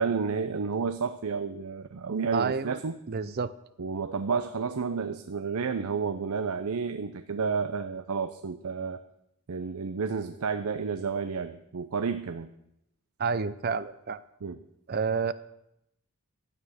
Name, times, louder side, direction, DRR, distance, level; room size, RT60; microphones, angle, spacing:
voice 1, 0.0-3.0 3.8-9.0 9.5-12.5 14.4-14.6, right 5 dB, 90° right, 9 dB, 0.6 m, -31 dB
voice 2, 2.3-2.8 3.1-3.5 13.2-14.2 14.9-15.3, right 5 dB, 45° right, 15 dB, 0.5 m, -29 dB
12.5 x 9.2 x 6.4 m, 0.80 s
head